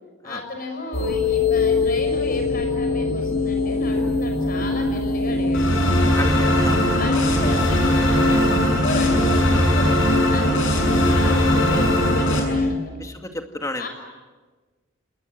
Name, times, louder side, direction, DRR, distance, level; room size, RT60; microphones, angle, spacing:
voice 1, 0.2-5.9 7.0-9.9 10.3-13.0 13.8-13.9, left 2 dB, 45° left, 4 dB, 6.1 m, -33 dB
sound 1, 0.9-12.7, left 2 dB, 90° left, 4.3 m, -23 dB
sound 2, 5.5-12.4, left 1 dB, 70° left, 7.2 m, -20 dB
voice 2, 6.2-6.8 11.3-11.6 13.0-13.9, left 2 dB, 15° left, 5 dB, 2.0 m, -32 dB
27.0 x 20.5 x 9.0 m, 1.3 s
head